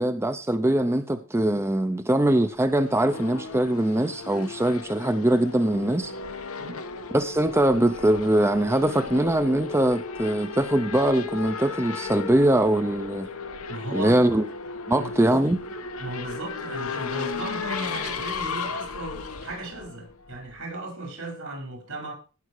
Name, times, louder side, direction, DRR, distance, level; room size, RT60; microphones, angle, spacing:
voice 1, 0.0-6.1 7.1-13.3 13.9-14.4 14.9-15.6, right 1 dB, 10° right, 0.6 m, -22 dB
Race car auto racing / Accelerating revving vroom, 2.4-20.6, left 4 dB, 85° left, 1.2 m, -35 dB
voice 2, 13.7-14.2 15.0-15.4 16.0-22.1, right 2 dB, 75° right, 5.6 m, -36 dB
16.5 x 6.2 x 4.7 m
head